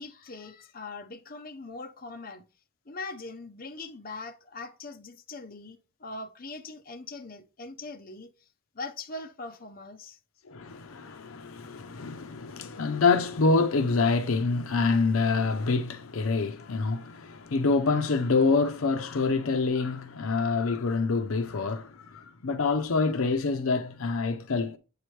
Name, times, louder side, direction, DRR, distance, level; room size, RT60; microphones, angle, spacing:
voice 1, 0.0-2.4 2.9-8.3 8.7-10.2, left 3 dB, 45° left, 0.8 m, -41 dB
voice 2, 10.5-24.8, left 4 dB, 75° left, 0.6 m, -26 dB
8.5 x 4.8 x 3.2 m
head